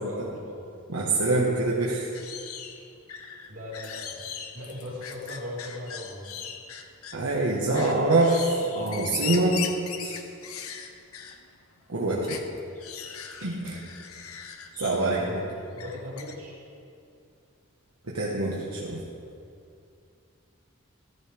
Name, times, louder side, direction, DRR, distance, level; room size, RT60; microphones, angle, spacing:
voice 1, 0.0-0.7 3.5-6.3 15.7-16.6, left 1 dB, 70° right, -5 dB, 3.4 m, -38 dB
voice 2, 0.9-2.1 7.1-9.6 10.0-10.2 11.9-12.4 13.4-13.8 14.8-15.4 18.1-19.0, right 2 dB, 90° right, -5 dB, 1.5 m, -25 dB
sound 1, 2.1-7.2 7.7-11.5 11.8-11.9 12.2-15.2 15.7-16.3, left 8 dB, 85° left, 0.9 m, -39 dB
14.5 x 13.0 x 3.5 m, 2.5 s
head